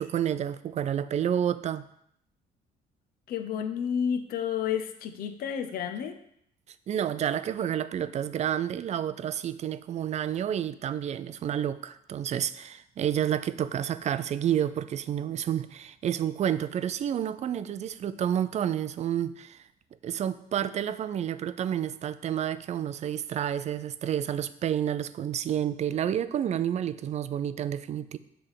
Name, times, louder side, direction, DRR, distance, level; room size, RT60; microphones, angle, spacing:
voice 1, 0.0-1.8 6.9-19.6 20.0-28.2, right 10 dB, 40° right, 14 dB, 0.4 m, -30 dB
voice 2, 3.3-6.2, left 8 dB, 60° left, 7 dB, 0.7 m, -30 dB
7.5 x 3.4 x 6.3 m, 0.73 s
cardioid pair, 110°, 17 cm